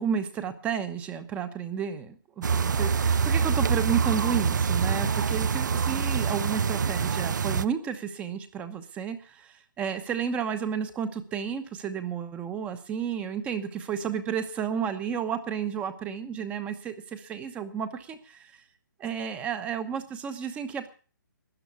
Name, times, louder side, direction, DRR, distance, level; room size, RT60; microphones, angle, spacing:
voice 1, 0.0-18.6 19.0-20.9, right 7 dB, 10° right, 11 dB, 1.0 m, -32 dB
sound 1, 2.4-7.6, right 6 dB, 60° right, 0.7 m, -25 dB
13.0 x 9.7 x 8.2 m, 0.38 s
hypercardioid pair, 160°, 11 cm